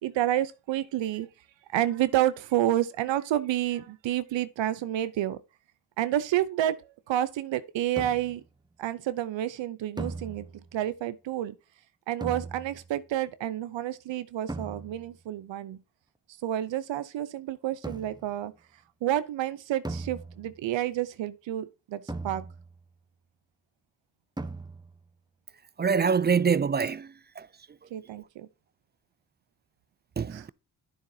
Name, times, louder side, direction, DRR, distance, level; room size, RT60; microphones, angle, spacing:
voice 1, 0.0-1.3 1.7-5.4 6.0-8.4 8.8-11.5 12.1-15.8 16.4-18.5 19.0-22.5 27.9-28.5 30.3-30.4, right 12 dB, 85° right, 0.7 m, -29 dB
sound 1, 8.0-8.5 10.0-10.8 12.2-13.0 14.5-15.2 17.8-18.4 19.8-20.7 22.1-22.9 24.4-25.1, right 2 dB, 10° right, 1.0 m, -39 dB
voice 2, 25.8-27.5 30.2-30.5, right 6 dB, 25° right, 0.3 m, -25 dB
9.5 x 7.2 x 2.7 m
supercardioid pair, 40°, 44 cm